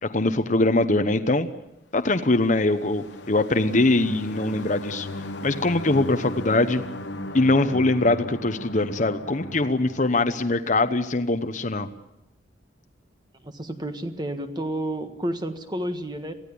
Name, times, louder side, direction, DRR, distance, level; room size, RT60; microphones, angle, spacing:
voice 1, 0.0-1.5 1.9-5.1 5.4-6.8 7.3-11.9, left 2 dB, 40° left, 9 dB, 1.0 m, -22 dB
sound 1, 2.2-10.9, left 2 dB, 65° left, 1.2 m, -37 dB
voice 2, 13.4-16.3, right 1 dB, 20° right, 7 dB, 1.5 m, -30 dB
22.5 x 16.0 x 8.5 m, 0.89 s
head